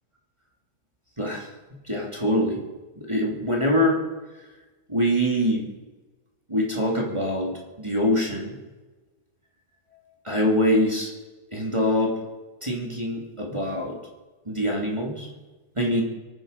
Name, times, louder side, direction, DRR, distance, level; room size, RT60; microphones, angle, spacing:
voice 1, 1.2-1.5 1.8-2.6 3.0-4.0 4.9-5.7 6.5-8.6 10.2-11.1 11.5-12.2 12.6-14.0 14.4-15.3 15.8-16.0, equal, 10° right, -2 dB, 2.3 m, -24 dB
23.5 x 9.9 x 5.2 m, 1.2 s
omnidirectional pair, 3.5 m